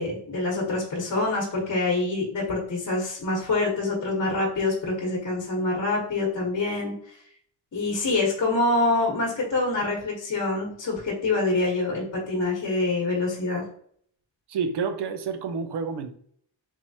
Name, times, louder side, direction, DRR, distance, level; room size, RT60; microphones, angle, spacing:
voice 1, 0.0-6.9 7.7-13.6, left 2 dB, 40° left, -1 dB, 1.2 m, -26 dB
voice 2, 14.5-16.2, right 5 dB, 60° right, 8 dB, 0.6 m, -29 dB
3.6 x 3.0 x 2.7 m, 0.62 s
wide cardioid pair, 140°, 46 cm